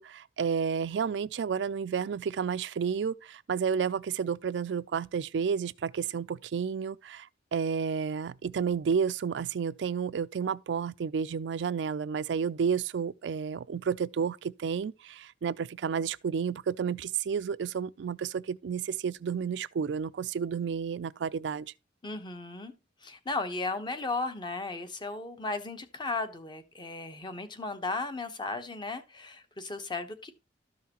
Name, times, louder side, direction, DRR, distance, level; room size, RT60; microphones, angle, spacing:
voice 1, 0.0-21.7, right 6 dB, 80° right, 0.4 m, -31 dB
voice 2, 22.0-22.7 23.0-30.3, left 3 dB, 25° left, 0.9 m, -35 dB
13.0 x 5.6 x 2.9 m
head